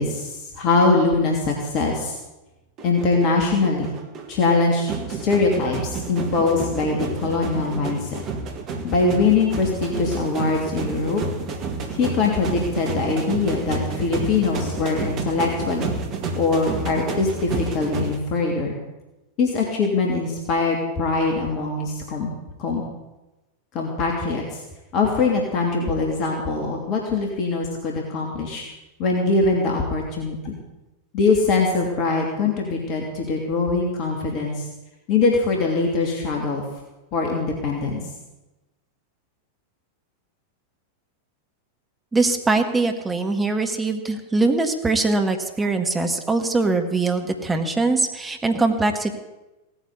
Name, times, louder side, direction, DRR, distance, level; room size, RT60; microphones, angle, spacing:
voice 1, 0.0-2.2 2.8-3.9 4.3-8.2 8.8-11.2 11.9-15.9 16.4-18.8 19.4-22.3 22.6-22.8 23.7-24.6 24.9-28.6 29.0-30.6 31.1-34.7 35.1-36.6 37.1-38.0, left 3 dB, 40° left, 0 dB, 3.0 m, -22 dB
sound 1, 2.8-18.2, right 4 dB, 35° right, 2.1 m, -30 dB
voice 2, 42.1-49.1, right 3 dB, 10° right, 5 dB, 1.8 m, -22 dB
17.5 x 9.1 x 8.3 m, 1.0 s
figure-of-eight pair, 90°, 0 cm